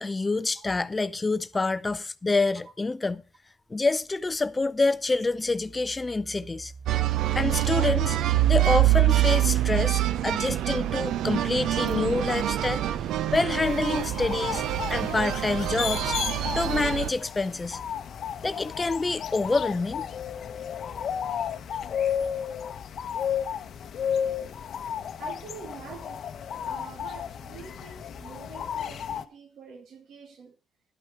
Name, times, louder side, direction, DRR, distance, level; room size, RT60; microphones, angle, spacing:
voice 1, 0.0-3.2 3.7-6.7 7.3-8.2 8.5-12.8 13.3-14.6 14.9-16.2 16.6-17.8 18.4-20.1, left 3 dB, 25° left, 0.4 m, -27 dB
Engine, 4.8-10.8, right 4 dB, 15° right, 0.7 m, -46 dB
sound 1, 6.9-17.1, right 14 dB, 85° right, 0.5 m, -25 dB
sound 2, 13.6-29.2, left 8 dB, 65° left, 0.7 m, -33 dB
voice 2, 25.2-26.3 26.5-30.6, right 5 dB, 65° right, 1.6 m, -46 dB
11.5 x 8.3 x 4.5 m
cardioid pair, 90°, 0 cm